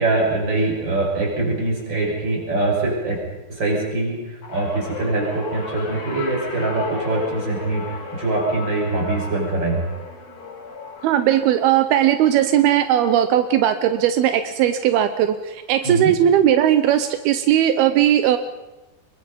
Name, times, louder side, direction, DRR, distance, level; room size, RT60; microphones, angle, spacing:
voice 1, 0.0-3.2 3.5-9.8 15.8-16.1, right 2 dB, 30° right, -1 dB, 6.5 m, -23 dB
sound 1, 4.4-14.9 15.2-15.6 16.7-16.8, left 4 dB, 45° left, 4.1 m, -37 dB
voice 2, 11.0-18.4, right 11 dB, 85° right, 9 dB, 2.8 m, -18 dB
25.0 x 22.5 x 5.4 m, 1.1 s
omnidirectional pair, 4.4 m